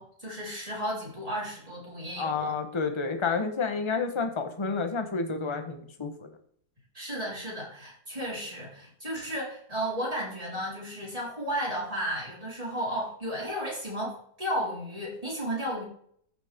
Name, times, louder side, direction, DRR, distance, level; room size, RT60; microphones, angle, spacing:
voice 1, 0.0-2.6 6.9-15.8, equal, 20° right, -5 dB, 4.8 m, -33 dB
voice 2, 2.2-6.3, left 4 dB, 20° left, 6 dB, 1.0 m, -30 dB
14.5 x 7.5 x 3.7 m, 0.63 s
omnidirectional pair, 1.7 m